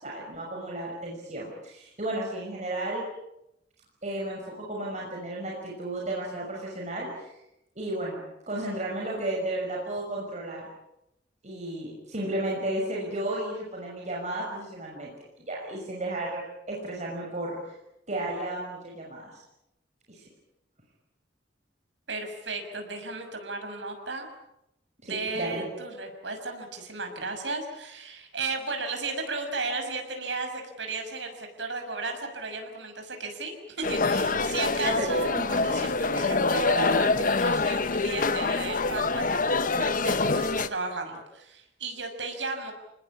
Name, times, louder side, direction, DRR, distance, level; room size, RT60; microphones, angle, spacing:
voice 1, 0.0-3.0 4.0-7.3 7.8-8.2 8.5-10.7 11.4-16.4 16.7-17.7 18.1-19.4 20.1-20.2 25.0-25.6 34.9-35.1 35.5-35.6, right 1 dB, 40° right, -2 dB, 6.1 m, -33 dB
voice 2, 22.1-24.3 25.0-42.7, right 3 dB, 90° right, 5 dB, 6.5 m, -34 dB
sound 1, 33.8-40.7, left 3 dB, 50° left, 1.1 m, -25 dB
29.5 x 20.0 x 8.7 m, 0.86 s
head